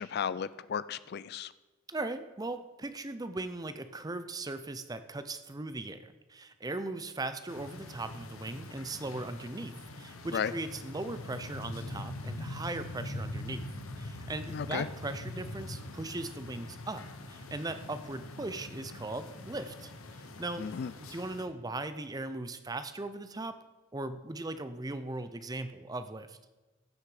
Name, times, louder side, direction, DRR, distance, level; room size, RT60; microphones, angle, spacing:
voice 1, 0.0-1.5 10.3-10.5 14.5-14.9 20.6-20.9, left 7 dB, 50° left, 16 dB, 0.3 m, -34 dB
voice 2, 1.9-13.7 14.0-20.7 20.9-23.6 23.9-26.4, right 2 dB, 20° right, 11 dB, 0.5 m, -39 dB
sound 1, 7.5-21.5, left 1 dB, 80° left, 1.1 m, -43 dB
15.5 x 6.4 x 5.0 m, 1.2 s
head